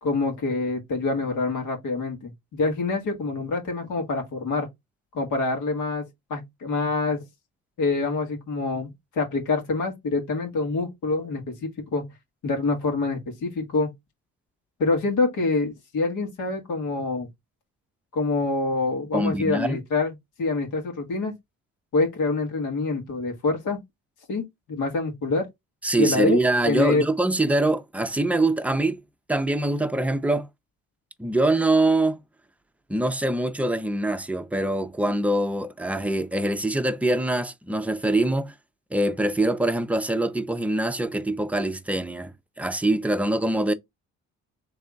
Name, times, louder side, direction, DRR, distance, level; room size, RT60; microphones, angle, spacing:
voice 1, 0.0-4.7 5.1-7.2 7.8-12.1 12.4-13.9 14.8-17.3 18.1-20.1 20.4-21.3 21.9-23.8 24.3-25.5 26.0-26.4 26.7-27.1, left 3 dB, 80° left, 1.9 m, -26 dB
voice 2, 19.1-19.8 25.8-29.0 29.3-30.5 31.2-32.2 32.9-38.5 38.9-43.7, right 2 dB, 5° right, 0.6 m, -24 dB
3.5 x 3.4 x 3.9 m
cardioid pair, 90°, 30 cm